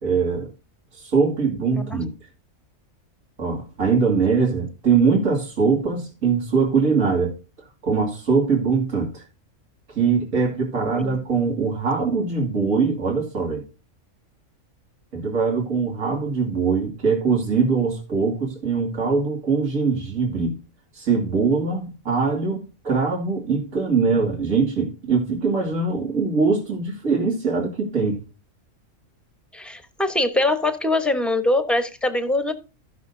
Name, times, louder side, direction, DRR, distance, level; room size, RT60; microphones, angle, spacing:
voice 1, 0.0-0.5 0.9-2.1 3.4-7.3 7.8-9.2 9.9-13.6 15.1-20.5 20.9-28.2, right 5 dB, 85° right, 2.9 m, -22 dB
voice 2, 1.7-2.0 11.0-11.2 29.5-32.5, left 2 dB, ahead, 0.9 m, -23 dB
15.5 x 6.2 x 2.7 m
omnidirectional pair, 1.4 m